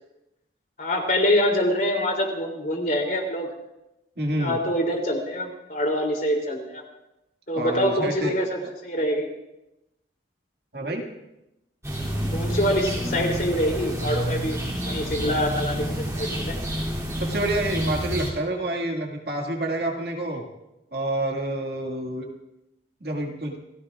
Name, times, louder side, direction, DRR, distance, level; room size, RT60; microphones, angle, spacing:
voice 1, 0.8-3.5 4.4-6.8 7.5-9.3 12.3-16.6, equal, 50° left, 1 dB, 3.2 m, -25 dB
voice 2, 4.2-4.6 7.5-8.3 10.7-11.1 17.2-20.4 20.9-22.3 23.0-23.6, right 1 dB, 60° right, 0 dB, 2.1 m, -28 dB
sound 1, 11.8-18.3, equal, 15° right, 2.9 m, -29 dB
29.0 x 16.0 x 2.5 m, 0.91 s
head